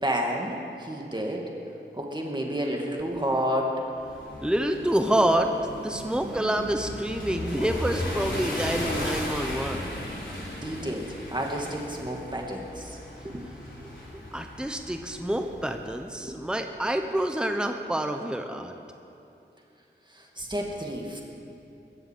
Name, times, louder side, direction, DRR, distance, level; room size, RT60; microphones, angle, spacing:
voice 1, 0.0-1.4 1.9-3.8 10.5-13.0 13.2-13.4 13.8-13.9 16.2-16.4 20.1-21.2, equal, 25° right, 0 dB, 2.3 m, -30 dB
sound 1, 3.9-16.1, left 1 dB, 80° left, 3.6 m, -36 dB
voice 2, 4.4-5.5 5.8-9.9 14.3-18.7, right 1 dB, 5° right, 5 dB, 0.9 m, -27 dB
21.5 x 8.0 x 7.6 m, 2.9 s
wide cardioid pair, 60°, 19 cm